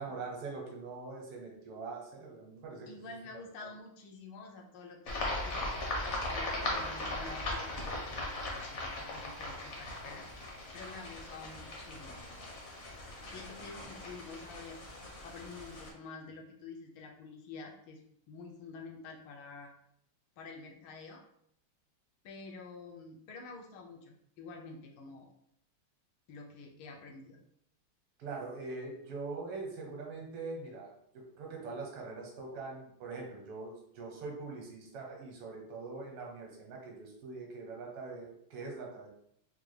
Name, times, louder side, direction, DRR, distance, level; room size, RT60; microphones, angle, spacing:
voice 1, 0.0-2.9 3.6-3.7 13.6-13.7 28.2-39.1, right 3 dB, 80° right, 0 dB, 1.8 m, -43 dB
voice 2, 2.8-5.8 6.3-10.3 10.7-12.2 13.3-14.8 15.2-18.0 18.3-19.7 20.4-21.2 22.2-25.3 26.3-27.4, left 4 dB, 75° left, 1 dB, 1.4 m, -48 dB
sound 1, 5.1-15.9, left 2 dB, 60° left, 0.7 m, -39 dB
4.5 x 2.2 x 3.1 m, 0.71 s
omnidirectional pair, 2.4 m